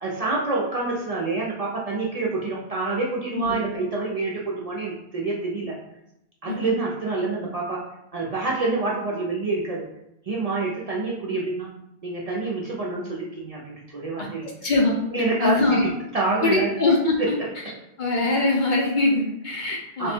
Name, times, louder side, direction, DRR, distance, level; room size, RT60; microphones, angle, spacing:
voice 1, 0.0-5.8 6.4-7.8 8.1-9.8 10.3-11.7 12.0-14.5 15.1-15.9 16.1-16.7 17.2-17.4 20.0-20.1, right 3 dB, 45° right, -4 dB, 0.6 m, -27 dB
voice 2, 14.2-14.9 15.4-15.9 16.4-17.2 18.0-20.1, left 2 dB, 50° left, -1 dB, 0.7 m, -22 dB
3.3 x 2.2 x 4.2 m, 0.84 s
omnidirectional pair, 1.1 m